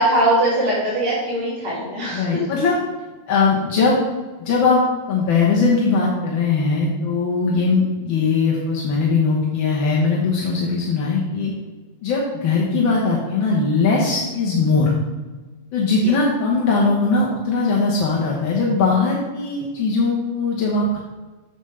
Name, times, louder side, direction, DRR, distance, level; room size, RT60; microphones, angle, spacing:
voice 1, 0.0-2.2 16.0-16.1, right 1 dB, 35° right, -11 dB, 2.8 m, -20 dB
voice 2, 2.1-2.8 3.3-4.0 4.4-4.8 5.1-11.5 12.0-14.9 15.7-21.0, left 4 dB, 60° left, -3 dB, 1.5 m, -20 dB
9.0 x 7.1 x 3.3 m, 1.2 s
omnidirectional pair, 3.3 m